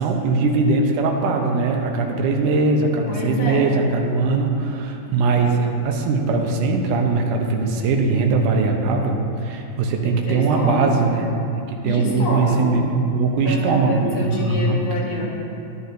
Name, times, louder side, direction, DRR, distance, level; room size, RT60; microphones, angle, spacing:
voice 1, 0.0-11.3 11.7-14.8, right 3 dB, 80° right, 2 dB, 2.3 m, -20 dB
voice 2, 3.1-3.7 10.0-11.1 11.8-12.8 13.4-15.2, left 2 dB, 55° left, -5 dB, 1.7 m, -27 dB
11.0 x 10.5 x 2.6 m, 2.6 s
omnidirectional pair, 3.7 m